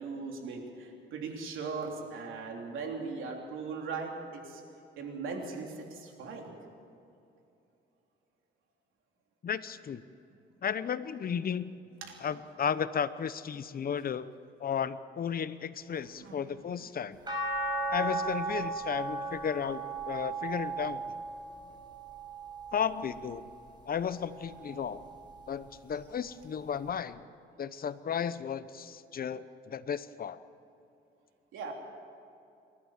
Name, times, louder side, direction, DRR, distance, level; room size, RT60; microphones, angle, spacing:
voice 1, 0.0-4.6 5.0-6.5 10.3-10.4 12.1-12.2 16.0-16.5 16.8-16.9 24.7-24.8 31.5-31.7, right 4 dB, 85° right, 2 dB, 3.4 m, -39 dB
voice 2, 9.4-10.0 10.6-11.8 12.2-14.3 14.6-17.2 17.9-21.0 22.7-23.4 23.9-25.0 25.5-27.2 27.6-30.4, left 7 dB, 50° left, 14 dB, 0.9 m, -34 dB
sound 1, 17.3-23.6 24.1-25.5 26.9-27.0, right 3 dB, 20° right, 5.3 m, -37 dB
28.5 x 12.5 x 7.4 m, 2.7 s
cardioid pair, 90°, 20 cm